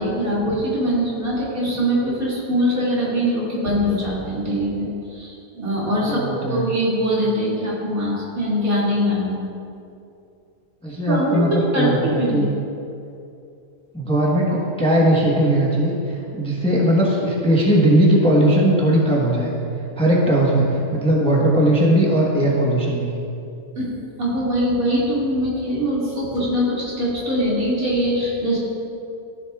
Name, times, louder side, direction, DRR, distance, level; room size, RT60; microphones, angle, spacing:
voice 1, 0.0-9.4 11.1-11.4 11.7-12.5 23.7-28.6, equal, 80° right, -7 dB, 2.8 m, -22 dB
voice 2, 6.0-6.7 10.8-12.5 13.9-16.0 16.3-19.5 20.0-23.2, right 1 dB, 5° left, -4 dB, 1.0 m, -18 dB
14.0 x 7.9 x 2.4 m, 2.6 s
omnidirectional pair, 1.5 m